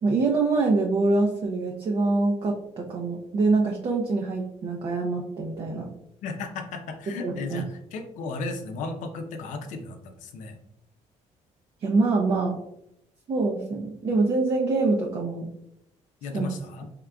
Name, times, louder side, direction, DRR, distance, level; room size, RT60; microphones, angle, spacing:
voice 1, 0.0-5.9 7.2-7.6 11.8-12.6 13.3-15.5 16.3-16.5, right 3 dB, 45° right, 0 dB, 0.5 m, -25 dB
voice 2, 6.2-10.6 16.2-16.9, left 3 dB, 80° left, 5 dB, 0.6 m, -35 dB
3.7 x 3.6 x 2.2 m, 0.78 s
cardioid pair, 115°, 13 cm